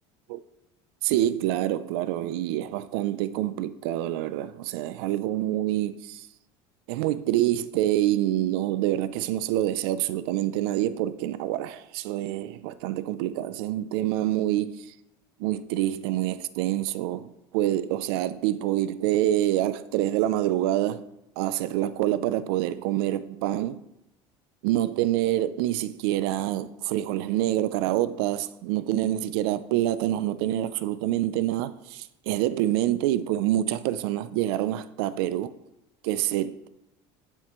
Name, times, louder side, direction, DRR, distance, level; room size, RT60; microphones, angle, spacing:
voice 1, 1.0-6.3 6.9-14.9 15.4-21.0 21.4-23.8 24.6-35.5 36.0-36.7, right 13 dB, 85° right, 0.4 m, -26 dB
9.7 x 7.7 x 3.1 m
cardioid pair, 175°, 12 cm